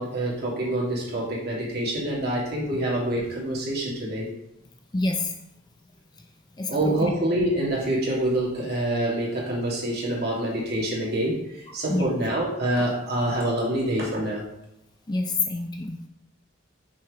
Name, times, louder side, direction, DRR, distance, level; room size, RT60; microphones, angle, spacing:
voice 1, 0.0-4.3 6.7-14.5, right 1 dB, 50° right, -4 dB, 2.2 m, -26 dB
voice 2, 4.9-5.4 6.6-7.1 11.9-12.1 15.1-16.0, left 2 dB, 20° left, 4 dB, 0.5 m, -27 dB
6.2 x 4.4 x 4.8 m, 0.81 s
head